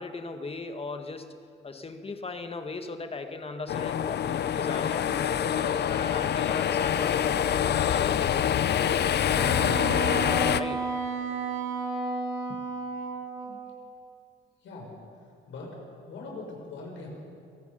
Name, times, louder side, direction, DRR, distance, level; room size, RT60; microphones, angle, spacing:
voice 1, 0.0-1.4 1.6-9.1 10.5-10.9 12.5-12.6, left 3 dB, 30° left, 6 dB, 1.7 m, -37 dB
sound 1, 3.7-10.6, left 9 dB, 55° left, 0.7 m, -26 dB
Wind instrument woodwind instrument, 9.3-13.8, right 4 dB, 75° right, 3.6 m, -32 dB
voice 2, 14.6-14.9 15.5-15.8 16.1-17.1, left 3 dB, 75° left, -1 dB, 6.7 m, -41 dB
26.0 x 18.5 x 5.6 m, 2.4 s
cardioid pair, 90°, 20 cm